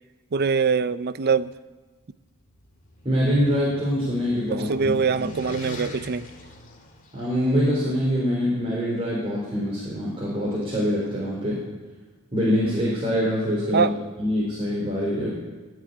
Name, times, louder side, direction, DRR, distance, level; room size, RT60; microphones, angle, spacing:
voice 1, 0.3-1.5 4.5-6.3 13.7-13.9, right 5 dB, 45° right, 15 dB, 0.5 m, -23 dB
sound 1, 2.4-7.6, equal, 40° left, 2.0 m, -42 dB
voice 2, 3.0-5.3 7.1-11.6 12.3-13.9 14.2-15.3, equal, 25° right, -6 dB, 4.3 m, -24 dB
15.5 x 7.6 x 9.9 m, 1.3 s
head